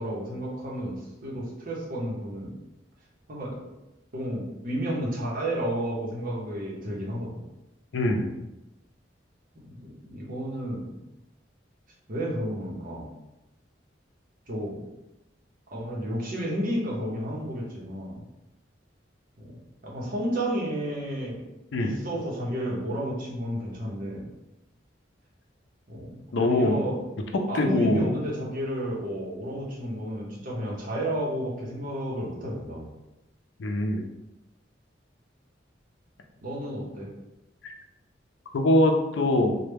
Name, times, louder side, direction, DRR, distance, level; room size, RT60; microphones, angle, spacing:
voice 1, 0.0-2.5 3.3-3.7 4.1-7.4 9.6-10.9 12.1-13.1 14.5-14.8 15.7-18.2 19.8-21.4 21.8-24.3 25.9-27.0 27.5-32.9 36.4-37.1, equal, 50° right, -4 dB, 0.9 m, -31 dB
voice 2, 7.9-8.3 21.7-22.0 26.3-26.8 27.5-28.1 33.6-34.1 37.6-37.7 38.5-39.5, left 1 dB, 85° left, 3 dB, 0.5 m, -23 dB
3.2 x 2.2 x 3.4 m, 0.95 s
head